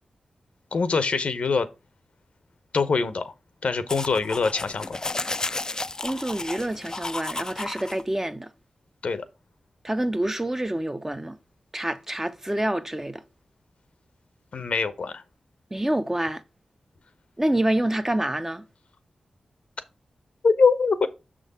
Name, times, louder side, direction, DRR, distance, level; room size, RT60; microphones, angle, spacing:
voice 1, 0.7-1.7 2.7-3.3 3.6-5.0 9.0-9.3 14.5-15.2 20.4-21.1, left 4 dB, 70° left, 0.7 m, -23 dB
sound 1, 3.9-8.0, left 2 dB, 30° left, 0.3 m, -33 dB
voice 2, 6.0-8.5 9.8-11.4 11.7-13.2 15.7-16.4 17.4-18.6, right 1 dB, 20° right, 0.7 m, -27 dB
6.2 x 3.8 x 5.3 m
cardioid pair, 45°, 2 cm